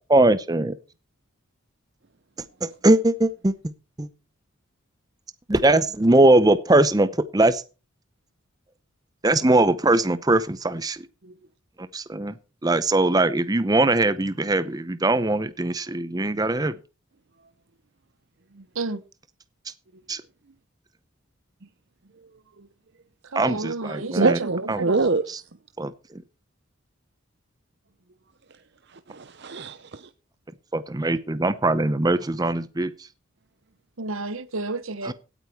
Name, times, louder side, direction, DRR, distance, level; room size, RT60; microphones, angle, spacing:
voice 1, 0.1-0.7 2.6-3.5 4.0-4.1 5.5-7.6 9.2-11.0 11.9-12.3 12.6-16.7 20.1-20.2 23.3-24.4 24.7-24.8 25.8-25.9 30.7-32.9 35.0-35.1, right 2 dB, 20° right, 0.6 m, -21 dB
voice 2, 23.3-24.3 24.8-25.1 34.0-35.1, right 3 dB, 75° right, 1.2 m, -30 dB
voice 3, 24.2-25.4 29.1-30.1, right 3 dB, 55° right, 0.7 m, -25 dB
17.0 x 9.1 x 4.6 m
head